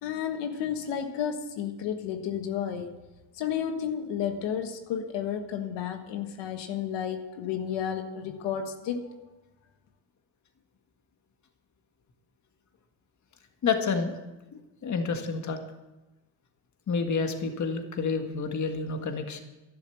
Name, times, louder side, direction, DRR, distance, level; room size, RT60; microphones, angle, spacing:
voice 1, 0.0-2.9 3.3-9.0, left 8 dB, 90° left, 6 dB, 1.5 m, -32 dB
voice 2, 13.6-14.2 14.5-15.6 16.9-19.4, left 5 dB, 45° left, 6 dB, 1.7 m, -29 dB
11.5 x 11.5 x 7.1 m, 1.1 s
cardioid pair, 120°, 41 cm